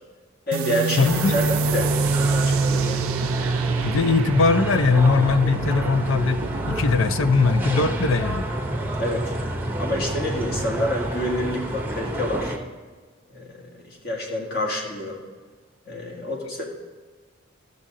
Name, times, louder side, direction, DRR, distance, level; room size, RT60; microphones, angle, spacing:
voice 1, 0.5-3.0 9.0-9.4 9.8-12.6 13.3-15.2 15.9-16.6, equal, 45° left, -1 dB, 1.7 m, -28 dB
sound 1, 0.5-7.8, right 4 dB, 85° right, 0.5 m, -26 dB
voice 2, 1.0-1.6 3.8-8.4, left 4 dB, 70° left, 12 dB, 0.5 m, -20 dB
sound 2, 1.0-12.6, right 1 dB, 10° right, 0.7 m, -29 dB
13.5 x 6.5 x 3.7 m, 1.5 s
head